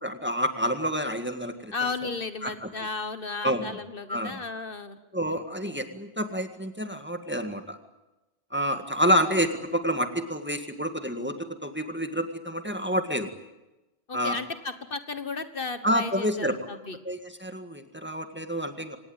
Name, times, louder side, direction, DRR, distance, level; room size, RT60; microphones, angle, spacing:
voice 1, 0.0-1.7 2.4-2.7 3.4-3.8 4.1-4.4 5.1-7.8 8.5-13.3 14.1-14.4 15.8-16.6 17.0-19.0, equal, 10° right, 7 dB, 1.8 m, -28 dB
voice 2, 1.7-5.0 14.1-17.0, left 4 dB, 55° left, 10 dB, 1.5 m, -34 dB
26.0 x 18.5 x 9.0 m, 1.0 s
omnidirectional pair, 1.1 m